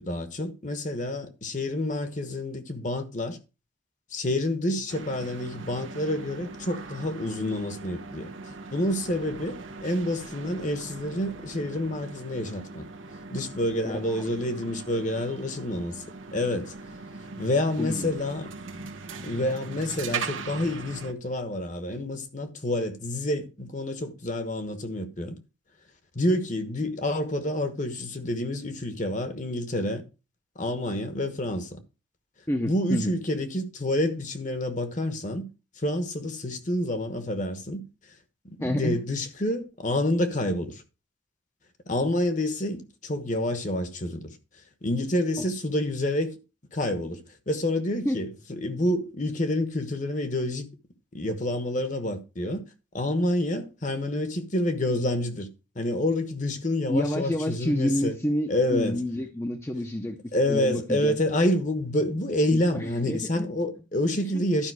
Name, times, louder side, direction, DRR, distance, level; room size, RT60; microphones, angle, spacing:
voice 1, 0.0-3.4 4.1-8.3 8.7-12.9 13.3-16.0 16.3-16.7 17.4-18.5 19.2-25.3 26.1-30.0 30.5-31.8 32.6-35.4 35.8-37.8 38.4-40.8 41.9-44.4 44.8-46.4 46.7-50.7 51.1-52.6 52.9-55.5 55.7-58.2 58.5-59.0 60.3-64.7, left 1 dB, 40° left, 1.2 m, -28 dB
sound 1, 4.9-21.1, right 4 dB, 85° right, 1.2 m, -40 dB
voice 2, 13.8-14.2 17.8-18.1 32.5-33.1 38.6-39.0 48.0-48.2 56.9-60.2 60.5-61.1 62.5-63.5 64.3-64.6, left 1 dB, 15° left, 0.7 m, -29 dB
12.0 x 5.4 x 4.7 m
head